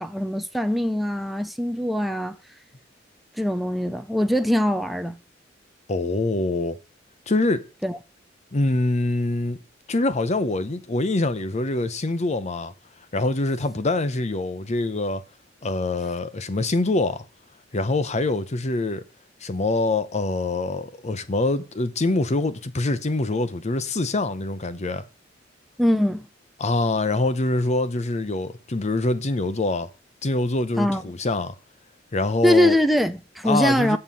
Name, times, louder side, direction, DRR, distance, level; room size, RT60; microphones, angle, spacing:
voice 1, 0.0-2.4 3.4-5.2 7.8-8.0 25.8-26.3 30.8-31.0 32.4-34.0, equal, ahead, 0.4 m, -22 dB
voice 2, 5.9-6.8 7.3-7.6 8.5-9.6 9.9-12.7 13.1-15.2 15.6-17.2 17.7-19.0 19.4-25.0 26.6-29.9 30.2-31.5 32.1-32.7 33.5-34.0, left 2 dB, 35° left, 0.7 m, -24 dB
7.6 x 6.6 x 5.4 m
head